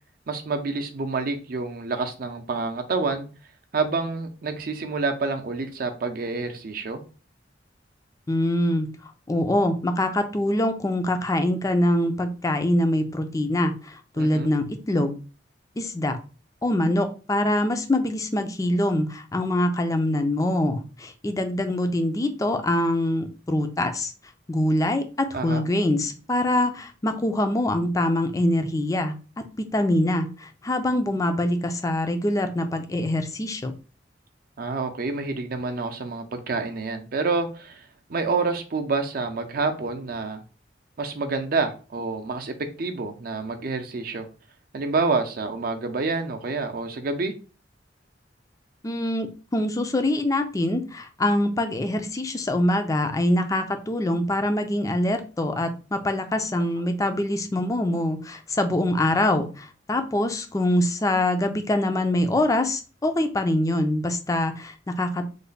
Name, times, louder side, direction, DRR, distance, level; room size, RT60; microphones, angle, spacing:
voice 1, 0.3-3.3 3.7-7.0 14.2-14.5 25.3-25.7 34.6-40.4 41.0-44.3 44.7-47.3, right 3 dB, 50° right, 6 dB, 0.5 m, -28 dB
voice 2, 8.3-8.9 9.3-15.2 15.8-16.2 16.6-24.1 24.5-29.2 29.6-33.7 48.8-65.3, left 1 dB, 20° left, 8 dB, 0.4 m, -24 dB
3.2 x 2.1 x 3.9 m, 0.35 s
head